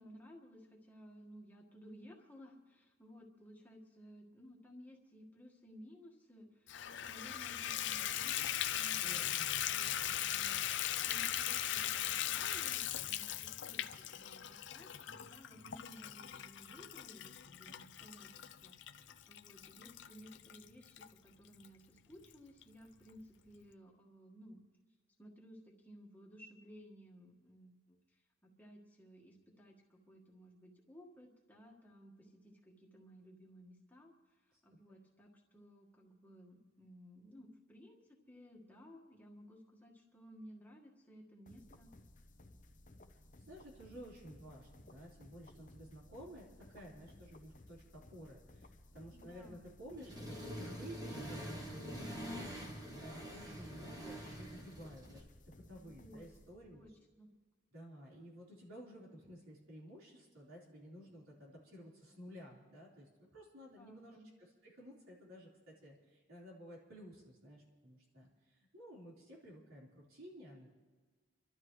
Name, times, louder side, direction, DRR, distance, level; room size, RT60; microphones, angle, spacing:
voice 1, 0.0-6.7 7.1-10.7 11.0-24.6 25.2-41.9 49.1-49.7 55.8-56.3 56.7-57.3 63.8-64.3, equal, 10° left, -1 dB, 1.6 m, -57 dB
Water tap faucet / Bathtub (filling or washing), 6.7-21.1 21.6-21.7 22.2-22.3 22.6-22.7, left 11 dB, 60° left, 0.5 m, -39 dB
voice 2, 9.0-9.5 34.7-35.0 43.4-56.8 57.7-64.2 64.6-70.7, equal, 90° right, -4 dB, 4.1 m, -54 dB
sound 1, 41.5-56.9, left 1 dB, 40° left, 0.8 m, -59 dB
Accelerating revving vroom, 50.0-55.2, equal, 20° right, 1.4 m, -45 dB
30.0 x 12.5 x 3.2 m, 1.4 s
head